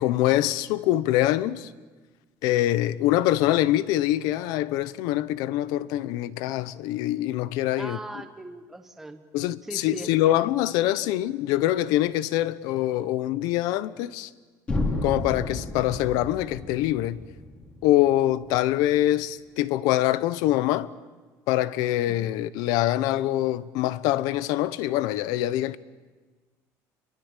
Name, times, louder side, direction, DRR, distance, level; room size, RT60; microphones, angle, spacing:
voice 1, 0.0-1.7 2.4-8.0 9.3-14.3 15.0-17.2 17.8-20.9 21.5-25.8, left 14 dB, 75° left, 0.9 m, -24 dB
voice 2, 7.8-9.2 9.6-10.3 22.1-22.4, right 2 dB, 5° right, 1.2 m, -39 dB
sound 1, 14.7-18.6, left 2 dB, 20° left, 3.1 m, -32 dB
28.5 x 23.0 x 7.4 m
cardioid pair, 180°, 7 cm